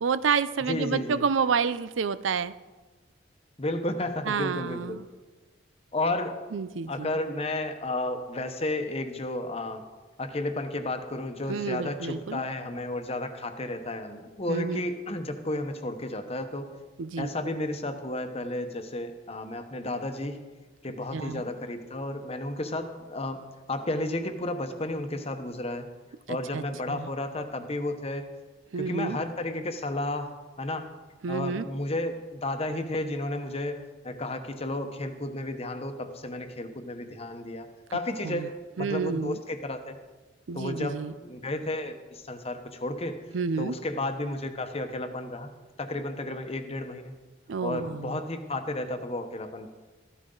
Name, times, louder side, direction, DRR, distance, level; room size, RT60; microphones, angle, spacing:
voice 1, 0.0-2.5 4.3-5.0 6.5-7.1 11.5-12.4 14.5-14.8 17.0-17.3 21.1-21.4 26.3-27.1 28.7-29.2 31.2-31.6 38.2-38.5 38.8-39.4 40.5-41.1 43.3-43.7 47.5-48.2, right 5 dB, 85° right, 15 dB, 0.5 m, -29 dB
voice 2, 0.6-1.2 3.6-5.0 5.9-6.4 6.9-9.8 10.2-16.7 17.2-20.4 20.8-23.4 23.7-25.9 26.3-28.3 28.8-30.9 31.3-40.0 40.5-43.2 43.6-45.5 45.8-47.1 47.6-49.7, left 2 dB, 35° left, 7 dB, 1.0 m, -32 dB
14.0 x 12.5 x 3.9 m, 1.2 s
head